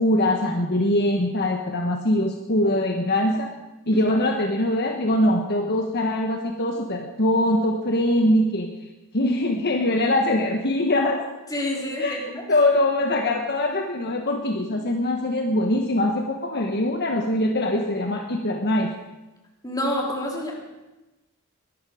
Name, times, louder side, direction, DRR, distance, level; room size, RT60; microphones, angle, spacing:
voice 1, 0.0-3.5 3.9-8.7 9.1-11.2 12.0-12.2 12.5-18.9, left 1 dB, 50° left, 2 dB, 1.3 m, -22 dB
voice 2, 11.5-12.4 19.6-20.6, left 1 dB, 15° left, -1 dB, 3.2 m, -28 dB
22.5 x 12.0 x 5.0 m, 1.1 s
head